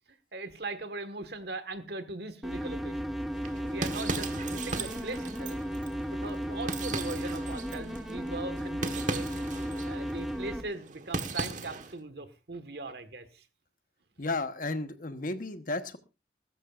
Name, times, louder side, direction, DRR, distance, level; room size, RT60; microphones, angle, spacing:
voice 1, 0.1-3.2 3.6-5.6 6.1-9.3 9.8-13.4, right 2 dB, 60° right, 10 dB, 1.6 m, -40 dB
sound 1, 2.4-10.6, equal, ahead, 1.2 m, -35 dB
sound 2, 3.3-12.0, right 3 dB, 45° right, 1.3 m, -38 dB
voice 2, 14.2-16.0, left 2 dB, 50° left, 9 dB, 1.1 m, -33 dB
20.5 x 13.0 x 2.5 m, 0.28 s
head